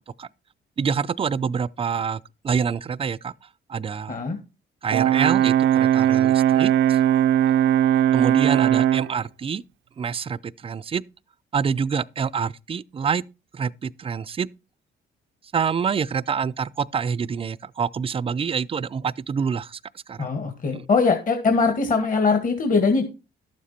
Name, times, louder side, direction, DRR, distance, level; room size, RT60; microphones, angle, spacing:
voice 1, 0.8-3.3 3.7-4.2 4.8-7.0 8.1-9.6 10.0-11.0 11.5-13.2 13.5-14.5 15.5-19.8 20.1-20.3 20.7-20.9, right 6 dB, 30° right, 0.5 m, -26 dB
Brass instrument, 4.9-9.1, right 11 dB, 75° right, 0.5 m, -19 dB
voice 2, 20.2-23.0, left 4 dB, 40° left, 1.9 m, -21 dB
12.0 x 7.3 x 4.3 m
cardioid pair, 90°, 20 cm